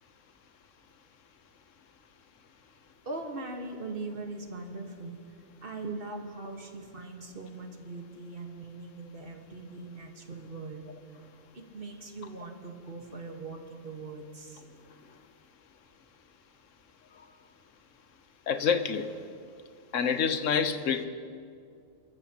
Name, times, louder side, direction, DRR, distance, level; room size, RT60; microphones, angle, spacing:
voice 1, 3.0-5.2 5.6-10.8 11.5-14.6, right 3 dB, 40° right, 3 dB, 1.6 m, -40 dB
voice 2, 18.5-19.1 19.9-21.1, left 6 dB, 65° left, 9 dB, 1.2 m, -27 dB
27.0 x 14.0 x 2.9 m, 2.3 s
omnidirectional pair, 1.4 m